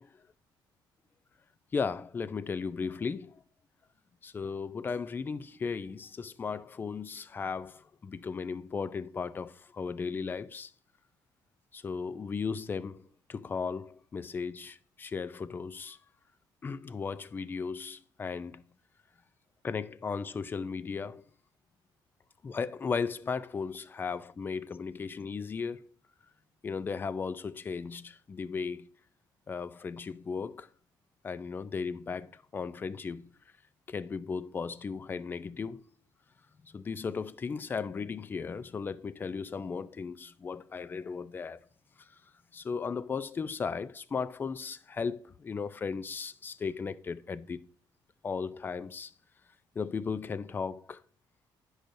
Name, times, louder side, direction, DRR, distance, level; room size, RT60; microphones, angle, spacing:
voice 1, 1.7-3.4 4.2-10.7 11.7-13.0 13.3-16.0 16.6-18.6 19.6-21.2 22.4-25.8 26.6-28.9 29.5-30.7 31.2-33.3 33.9-35.8 36.6-41.6 42.5-47.6 48.2-49.1 49.8-51.0, left 5 dB, 25° left, 0.4 m, -36 dB
10.0 x 6.3 x 2.6 m
cardioid pair, 135°, 8 cm